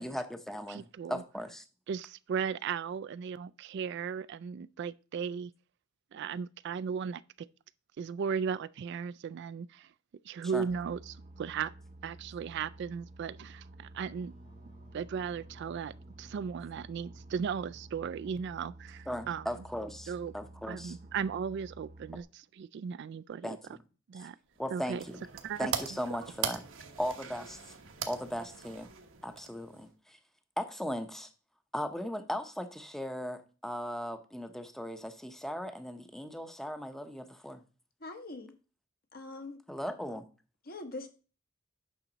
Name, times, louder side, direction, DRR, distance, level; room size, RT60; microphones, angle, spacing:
voice 1, 0.0-1.6 10.5-10.6 19.1-21.0 23.4-23.6 24.1-24.2 24.6-25.3 25.6-26.6 27.0-27.6 28.1-28.9 29.2-30.2 30.6-31.3 31.7-37.6 39.7-40.3, equal, ahead, 0.7 m, -38 dB
voice 2, 0.7-1.2 1.9-5.5 6.1-7.5 8.0-9.9 10.2-11.7 12.0-14.3 14.9-19.5 20.1-20.3 20.7-23.6 24.1-24.4 24.7-25.0 25.4-25.7, right 6 dB, 60° right, 0.3 m, -36 dB
Boat Water vehicle, 10.7-22.2, right 2 dB, 35° right, 0.7 m, -52 dB
Wind instrument woodwind instrument, 13.8-18.4, equal, 70° left, 4.0 m, -61 dB
sound 1, 24.5-29.9, right 7 dB, 75° right, 1.1 m, -41 dB
voice 3, 38.0-38.5 39.1-39.6 40.7-41.1, left 2 dB, 50° left, 1.2 m, -42 dB
8.8 x 5.7 x 4.0 m
head